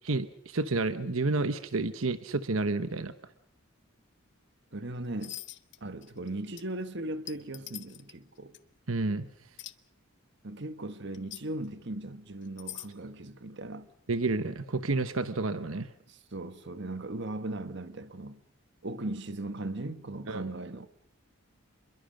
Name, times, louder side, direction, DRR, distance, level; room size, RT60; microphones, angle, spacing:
voice 1, 0.0-3.1 8.9-9.3 14.1-15.9 20.3-20.4, right 3 dB, 75° right, 1.1 m, -30 dB
voice 2, 4.7-5.4 5.8-8.5 10.4-13.9 16.1-18.4 18.8-20.9, right 2 dB, 55° right, 1.4 m, -38 dB
sound 1, 5.2-5.8 6.0-6.3 6.6-6.7 7.3-8.1 8.5-8.6 9.6-9.7 11.1-11.4 12.4-12.9, left 13 dB, 55° left, 1.1 m, -42 dB
27.5 x 22.5 x 6.5 m
head